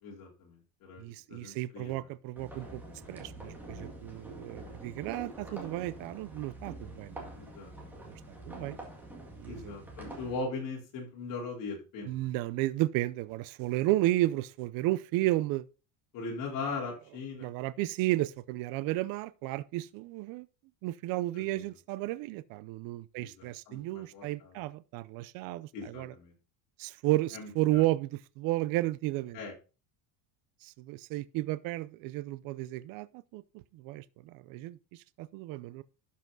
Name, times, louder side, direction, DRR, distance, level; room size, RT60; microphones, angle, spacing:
voice 1, 0.0-2.1 7.4-7.7 9.5-12.3 16.1-17.5 21.5-21.6 23.2-24.6 25.7-26.3 27.3-27.8 29.3-29.5, left 3 dB, 50° left, 3.9 m, -40 dB
voice 2, 1.0-2.8 3.1-7.2 8.0-8.2 8.5-8.8 9.4-9.7 12.1-15.7 17.4-20.5 20.8-26.1 26.8-29.4 30.6-33.4 33.7-35.8, right 17 dB, 55° right, 0.6 m, -33 dB
sound 1, 2.4-10.4, right 1 dB, 5° right, 2.0 m, -46 dB
12.0 x 5.8 x 4.0 m
cardioid pair, 175°, 42 cm